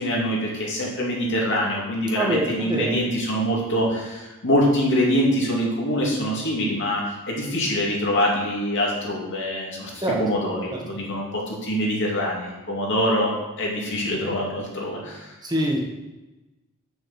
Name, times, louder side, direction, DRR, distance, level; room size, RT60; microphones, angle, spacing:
voice 1, 0.0-13.3 13.6-15.3, equal, 55° left, -3 dB, 2.4 m, -24 dB
voice 2, 2.1-2.9 10.0-10.2 10.7-11.0 15.4-15.8, right 1 dB, 20° right, -1 dB, 1.4 m, -25 dB
6.8 x 6.3 x 6.4 m, 1.1 s
head